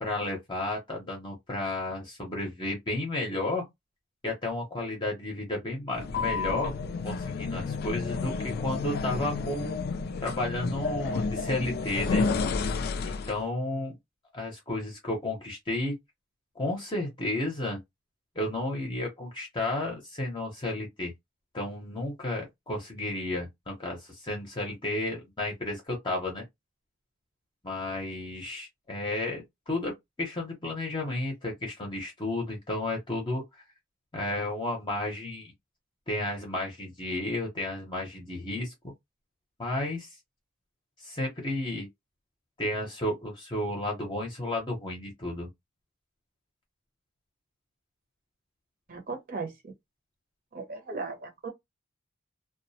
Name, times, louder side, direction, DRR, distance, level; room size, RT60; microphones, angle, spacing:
voice 1, 0.0-3.7 4.2-6.7 7.0-9.8 10.2-12.3 13.0-14.0 14.3-16.0 16.6-17.8 18.4-21.1 21.5-26.4 27.6-29.9 30.2-33.4 34.1-35.5 36.1-38.9 39.6-40.1 41.0-41.9 42.6-45.5, left 2 dB, 25° left, 0.7 m, -32 dB
sound 1, 5.9-13.4, left 4 dB, 50° left, 0.3 m, -31 dB
voice 2, 48.9-49.7 50.5-51.5, right 4 dB, 50° right, 0.9 m, -37 dB
2.3 x 2.1 x 2.6 m
head